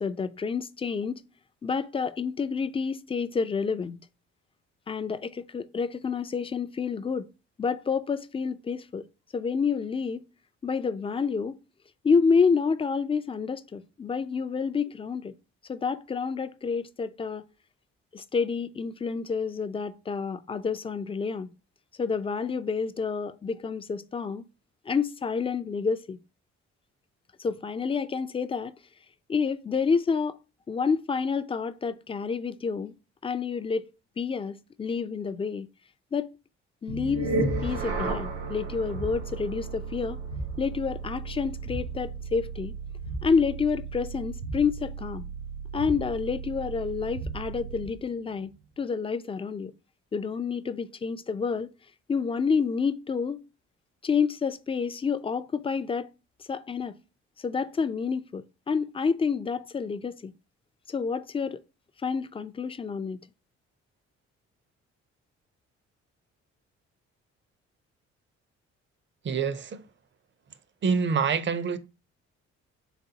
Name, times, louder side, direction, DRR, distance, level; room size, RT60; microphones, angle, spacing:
voice 1, 0.0-1.2 1.6-4.1 4.9-7.3 7.6-9.1 9.3-10.2 10.6-11.6 12.0-15.3 15.7-17.4 18.1-21.5 22.0-24.5 24.9-26.2 27.4-28.7 29.3-30.4 30.7-32.9 33.2-35.7 36.1-36.3 36.8-37.3 37.6-40.2 40.6-42.7 43.2-45.3 45.7-49.7 50.1-51.7 52.1-53.4 54.0-56.1 56.4-57.0 57.4-60.3 60.9-61.6 62.0-63.2, left 5 dB, 20° left, 0.4 m, -29 dB
sound 1, 36.9-48.0, right 3 dB, 80° right, 1.4 m, -34 dB
voice 2, 69.2-69.9 70.8-71.8, right 6 dB, 40° right, 0.6 m, -26 dB
4.0 x 3.4 x 2.8 m
supercardioid pair, 60°, 29 cm